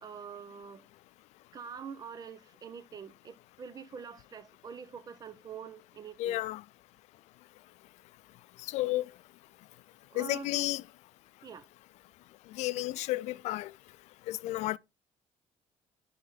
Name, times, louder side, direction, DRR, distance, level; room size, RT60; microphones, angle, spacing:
voice 1, 0.0-0.8 1.5-6.4 10.1-10.7 11.4-11.6, right 6 dB, 35° right, 0.9 m, -45 dB
voice 2, 6.2-6.6 8.7-9.0 10.2-10.8 12.6-13.7 14.3-14.8, left 17 dB, 80° left, 0.4 m, -32 dB
10.5 x 3.7 x 3.9 m
cardioid pair, 135°, 12 cm